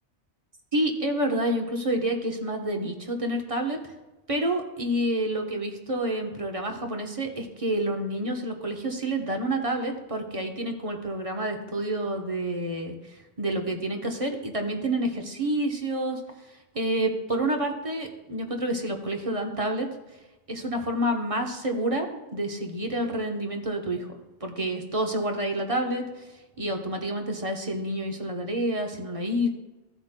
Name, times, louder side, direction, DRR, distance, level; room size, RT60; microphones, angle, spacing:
voice 1, 0.7-3.8 4.3-13.0 13.4-16.2 16.7-19.9 20.5-24.1 24.4-26.2 26.6-29.5, right 1 dB, 30° right, 2 dB, 0.9 m, -28 dB
15.5 x 8.0 x 2.2 m, 1.1 s
omnidirectional pair, 1.2 m